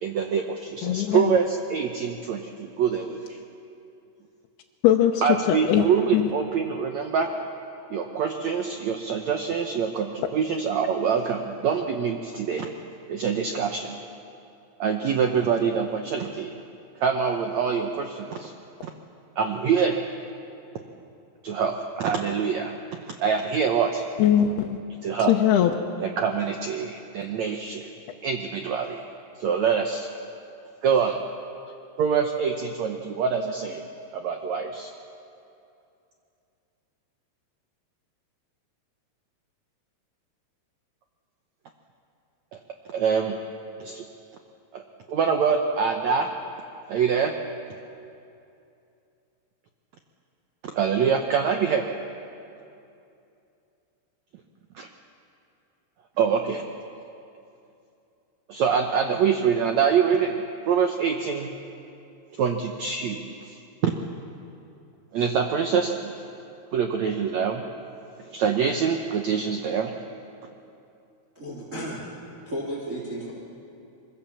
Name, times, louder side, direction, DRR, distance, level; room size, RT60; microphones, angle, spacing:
voice 1, 0.0-3.4 5.2-7.3 7.9-12.7 13.1-14.0 14.8-16.6 17.0-18.5 18.8-18.9 19.4-20.0 21.4-22.7 23.2-24.0 25.0-25.3 26.0-27.9 28.2-29.0 29.4-30.1 30.8-31.2 32.0-33.8 34.1-34.9 42.5-42.6 42.9-43.4 43.8-44.0 44.7-44.8 45.1-46.3 46.9-47.3 50.7-51.9 56.2-56.6 58.5-61.5 62.3-63.9 65.1-66.1 66.7-67.6 68.2-69.9, right 6 dB, 80° right, 4 dB, 1.6 m, -25 dB
voice 2, 0.8-1.4 4.8-5.9 6.1-6.3 24.2-24.8 25.3-25.7, left 10 dB, 80° left, 1 dB, 2.9 m, -21 dB
voice 3, 71.3-72.1 72.5-73.3, right 1 dB, 20° right, -4 dB, 3.3 m, -33 dB
24.5 x 22.5 x 7.2 m, 2.7 s
omnidirectional pair, 4.6 m